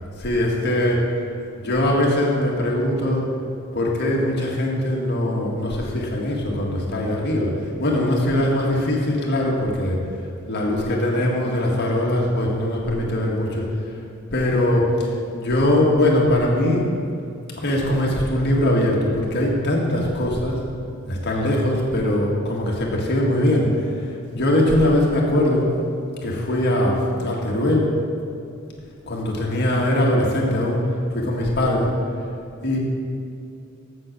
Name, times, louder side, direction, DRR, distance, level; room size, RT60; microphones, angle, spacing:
voice 1, 0.2-1.0 1.6-3.2 3.7-7.5 7.8-10.0 10.5-13.7 14.3-15.1 15.3-16.9 17.6-20.6 21.1-23.7 24.3-25.7 26.2-27.9 29.1-30.8 31.1-31.9 32.6-32.8, left 1 dB, 55° left, -2 dB, 1.8 m, -21 dB
7.9 x 7.7 x 6.1 m, 2.5 s
head